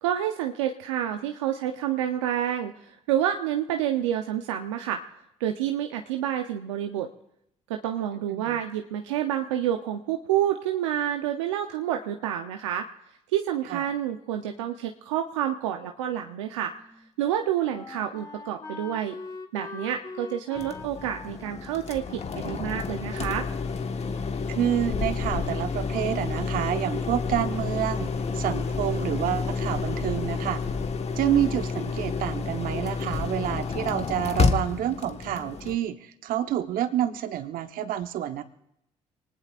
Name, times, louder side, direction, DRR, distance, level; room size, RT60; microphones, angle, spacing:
voice 1, 0.0-5.0 5.4-7.1 7.7-12.9 13.3-16.7 17.2-19.2 19.5-23.5, right 11 dB, 90° right, 4 dB, 0.7 m, -28 dB
Wind instrument woodwind instrument, 16.2-23.5, left 3 dB, 25° left, 1.8 m, -44 dB
sound 1, 20.5-35.7, left 4 dB, 45° left, 1.3 m, -30 dB
voice 2, 24.5-30.6 31.2-38.4, right 11 dB, 70° right, 9 dB, 1.1 m, -28 dB
24.5 x 19.0 x 2.5 m, 0.81 s
hypercardioid pair, 50°, 15 cm